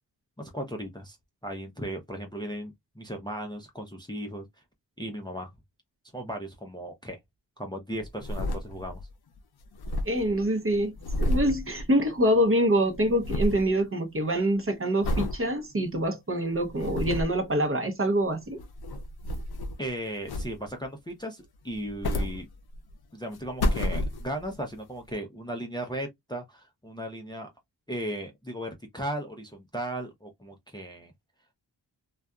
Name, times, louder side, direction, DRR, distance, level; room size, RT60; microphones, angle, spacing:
voice 1, 0.4-1.2 1.4-4.4 5.0-5.5 6.1-7.2 7.6-9.0 19.8-22.5 23.1-27.5 27.9-31.1, right 1 dB, 10° left, 0.5 m, -36 dB
sound 1, 8.0-9.1 9.4-9.5 9.6-12.4 12.7-13.7 14.1-14.5 15.0-15.4 15.9-16.0 16.6-17.4 18.4-19.9 20.3-20.8 21.7-22.9 23.3-24.5 25.1-25.2, left 1 dB, 60° left, 0.5 m, -31 dB
voice 2, 10.0-10.9 11.2-18.6, equal, 30° right, 0.7 m, -25 dB
2.6 x 2.3 x 2.2 m
cardioid pair, 60°, 44 cm